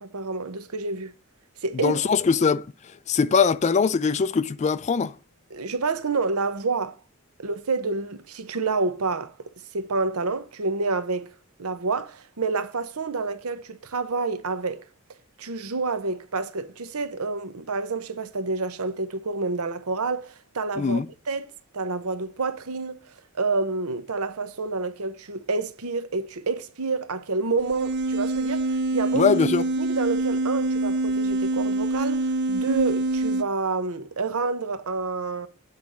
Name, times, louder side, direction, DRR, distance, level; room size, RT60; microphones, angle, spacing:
voice 1, 0.0-1.1 1.6-2.0 5.5-7.0 7.4-9.3 9.7-11.3 11.6-14.8 15.4-23.0 23.3-29.3 29.8-35.5, right 3 dB, 90° right, 0.9 m, -28 dB
voice 2, 1.8-2.7 3.1-5.2 20.8-21.1 29.1-29.6, left 5 dB, 30° left, 0.3 m, -21 dB
sound 1, 27.6-33.4, right 2 dB, 50° right, 0.4 m, -25 dB
8.3 x 4.1 x 6.1 m
head